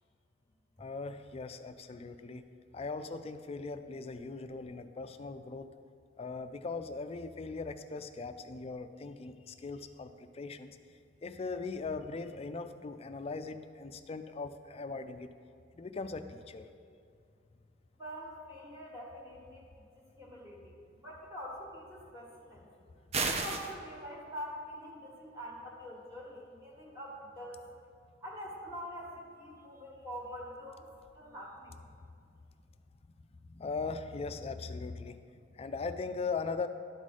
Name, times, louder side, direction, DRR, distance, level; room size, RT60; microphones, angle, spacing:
voice 1, 0.8-2.5 2.7-5.7 6.2-10.8 11.2-15.3 15.7-16.7 32.0-32.1 33.5-35.2 35.5-36.7, left 4 dB, 30° left, 10 dB, 0.4 m, -39 dB
voice 2, 18.0-19.6 20.0-22.7 23.3-27.6 28.2-30.9 31.1-31.8, equal, 15° right, -4 dB, 1.3 m, -45 dB
sound 1, 23.1-23.7, right 4 dB, 35° right, 0.5 m, -31 dB
12.0 x 4.8 x 4.2 m, 2.4 s
head